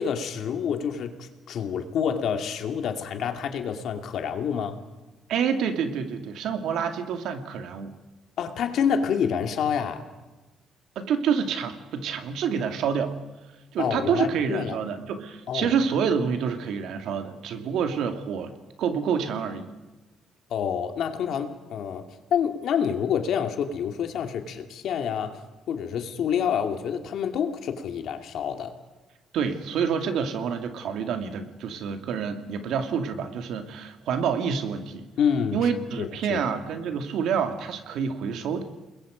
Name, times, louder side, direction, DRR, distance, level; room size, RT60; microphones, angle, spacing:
voice 1, 0.0-4.8 8.4-10.0 13.8-14.8 15.5-15.7 20.5-25.4 25.7-28.7 35.2-35.6 36.0-36.4, left 7 dB, 65° left, 6 dB, 2.5 m, -27 dB
voice 2, 5.3-7.9 11.0-13.2 13.7-18.5 18.8-19.7 29.3-35.0 35.5-38.6, right 7 dB, 75° right, 7 dB, 2.5 m, -27 dB
29.5 x 21.0 x 5.2 m, 1.2 s
cardioid pair, 120°, 0 cm